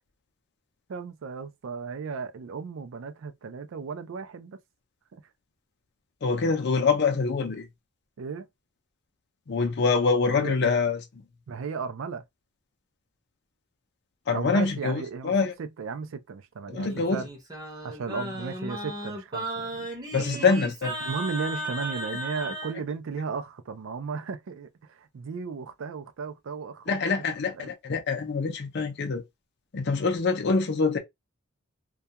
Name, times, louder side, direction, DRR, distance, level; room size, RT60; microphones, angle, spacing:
voice 1, 0.9-4.6 5.1-5.2 8.2-8.5 10.3-10.5 11.5-12.2 14.3-15.3 15.6-17.3 17.8-20.6 21.0-27.2 27.5-27.7, right 5 dB, 60° right, 0.4 m, -35 dB
voice 2, 6.2-7.7 9.5-11.2 14.3-15.5 16.7-17.2 20.1-20.9 26.9-29.2 29.7-31.0, left 4 dB, 50° left, 0.5 m, -25 dB
Singing, 16.7-22.7, right 1 dB, 20° right, 0.7 m, -35 dB
2.3 x 2.2 x 2.8 m
head